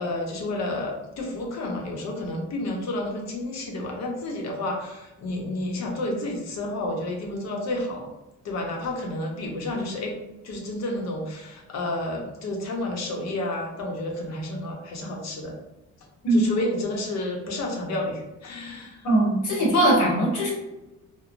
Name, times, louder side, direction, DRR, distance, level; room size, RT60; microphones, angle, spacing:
voice 1, 0.0-8.1 8.4-10.2 10.4-15.5 16.3-19.0, left 1 dB, 60° left, 1 dB, 0.7 m, -30 dB
voice 2, 19.0-20.5, right 1 dB, 85° left, -3 dB, 1.1 m, -20 dB
3.0 x 2.0 x 2.5 m, 1.0 s
cardioid pair, 90°, 30 cm